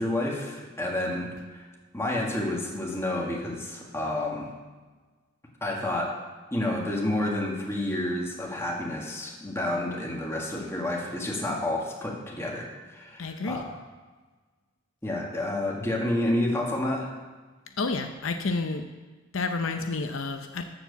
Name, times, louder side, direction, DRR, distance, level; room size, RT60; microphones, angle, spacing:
voice 1, 0.0-1.7 1.9-4.5 5.6-6.2 6.5-13.7 15.0-17.1, left 1 dB, 15° left, -2 dB, 1.8 m, -30 dB
voice 2, 13.2-13.6 17.8-18.9 19.3-20.6, left 3 dB, 70° left, 6 dB, 0.6 m, -30 dB
13.0 x 4.6 x 6.9 m, 1.4 s
head